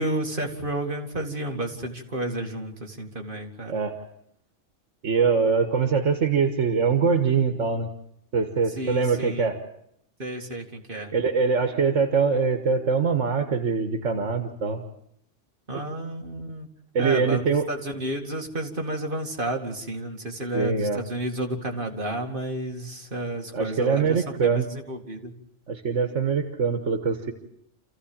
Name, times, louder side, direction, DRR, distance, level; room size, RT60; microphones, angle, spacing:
voice 1, 0.0-3.8 8.8-9.5 10.2-11.1 15.7-16.7 17.0-17.4 17.7-25.3, right 1 dB, 45° right, 2 dB, 2.7 m, -31 dB
voice 2, 5.0-7.9 8.3-9.6 11.1-14.8 15.7-15.8 16.9-17.7 20.5-21.0 23.5-24.7 25.7-27.3, right 5 dB, 90° right, 7 dB, 1.8 m, -23 dB
27.5 x 15.0 x 8.8 m, 0.74 s
omnidirectional pair, 1.2 m